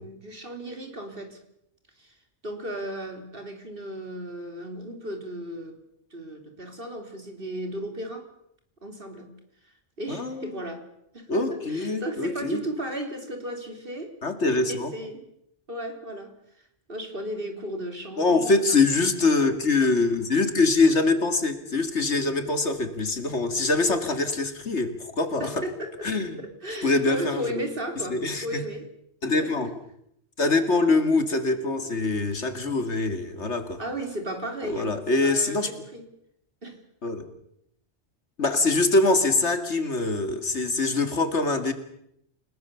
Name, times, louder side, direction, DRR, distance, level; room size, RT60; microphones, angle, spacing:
voice 1, 0.0-1.4 2.0-2.2 2.4-5.8 6.1-8.3 8.8-9.3 9.6-10.8 11.1-14.2 14.5-15.2 15.7-19.3 25.4-26.1 26.4-28.9 29.4-29.5 33.8-36.0 36.6-36.8, right 1 dB, 50° right, 5 dB, 3.7 m, -35 dB
voice 2, 10.1-10.5 11.3-12.6 14.2-14.9 18.2-25.6 26.0-26.4 26.8-27.4 28.1-28.6 29.2-29.7 30.4-33.8 34.7-35.7 37.0-37.3 38.4-41.7, left 3 dB, 75° left, 9 dB, 2.6 m, -24 dB
29.5 x 19.0 x 7.0 m, 0.76 s
omnidirectional pair, 1.2 m